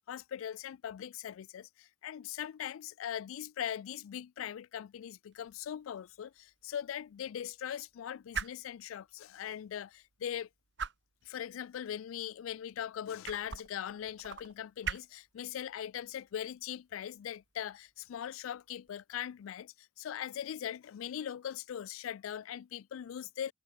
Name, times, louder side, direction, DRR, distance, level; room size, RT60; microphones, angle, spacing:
voice 1, 0.0-10.5 11.2-23.5, left 9 dB, 90° left, 0.3 m, -40 dB
sound 1, 5.3-18.9, right 6 dB, 60° right, 1.3 m, -47 dB
head